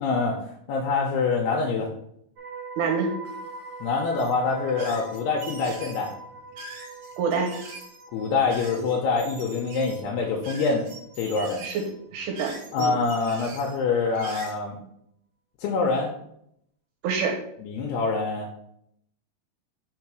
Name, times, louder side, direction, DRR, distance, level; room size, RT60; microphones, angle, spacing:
voice 1, 0.0-1.9 3.8-6.1 8.1-10.9 11.2-11.6 12.7-14.8 15.6-16.1 17.6-18.5, left 4 dB, 80° left, 0 dB, 2.5 m, -25 dB
sound 1, 2.4-12.4 12.7-13.0, right 3 dB, 40° right, 2.4 m, -43 dB
voice 2, 2.8-3.1 7.2-7.5 11.6-11.8 12.1-12.9 17.0-17.4, right 5 dB, 80° right, 2 dB, 2.8 m, -26 dB
sound 2, 4.2-14.5, right 3 dB, 55° right, 2.8 m, -43 dB
6.1 x 3.7 x 4.6 m, 0.74 s
omnidirectional pair, 5.1 m